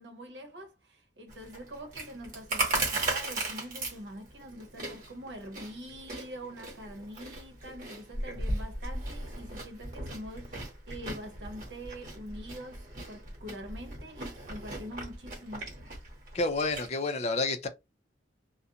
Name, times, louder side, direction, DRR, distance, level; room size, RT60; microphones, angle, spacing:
voice 1, 0.0-15.7, equal, 80° right, 0.9 m, -44 dB
Chewing mastication, 1.3-16.9, right 2 dB, 45° right, 1.2 m, -37 dB
voice 2, 16.3-17.7, left 3 dB, 35° left, 0.4 m, -29 dB
2.4 x 2.1 x 2.7 m
head